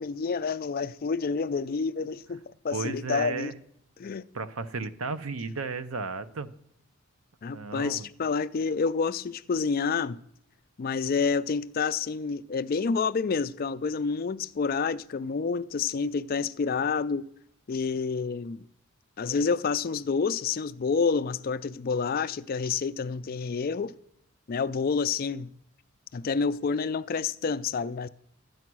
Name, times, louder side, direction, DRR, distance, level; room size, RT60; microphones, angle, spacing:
voice 1, 0.0-3.5 4.0-4.2 7.4-10.2 10.8-17.2 17.7-18.6 19.2-23.9 24.5-25.5 26.1-28.1, left 5 dB, 40° left, 0.4 m, -28 dB
voice 2, 2.7-3.6 4.3-6.5 7.5-8.1, right 4 dB, 75° right, 0.7 m, -34 dB
12.0 x 9.4 x 6.1 m
head